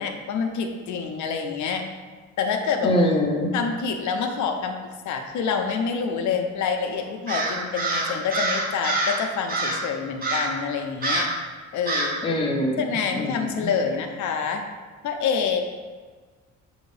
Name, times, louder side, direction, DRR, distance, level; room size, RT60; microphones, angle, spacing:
voice 1, 0.0-1.8 2.4-3.0 3.5-4.8 5.1-11.3 11.7-12.2 12.8-14.6 15.0-15.6, left 6 dB, 75° left, 4 dB, 0.5 m, -27 dB
voice 2, 2.8-3.5 12.2-13.7, left 1 dB, 20° left, 0 dB, 0.5 m, -24 dB
Crow, 7.3-9.2 9.5-9.9 10.2-10.6 11.0-11.4 11.9-12.2, right 2 dB, 30° right, 0.7 m, -26 dB
5.7 x 2.6 x 3.2 m, 1.4 s
cardioid pair, 130°, 30 cm